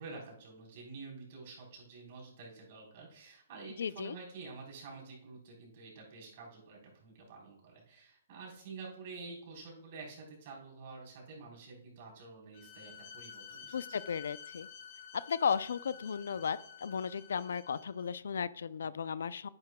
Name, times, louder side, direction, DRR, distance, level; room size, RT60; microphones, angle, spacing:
voice 1, 0.0-14.0, right 4 dB, 40° right, -2 dB, 3.9 m, -49 dB
voice 2, 3.8-4.2 13.7-14.7 15.1-19.5, left 6 dB, 75° left, 17 dB, 0.4 m, -35 dB
Bowed string instrument, 12.5-18.0, left 7 dB, 35° left, 2.4 m, -51 dB
10.5 x 9.7 x 2.2 m, 0.73 s
hypercardioid pair, 165°, 0 cm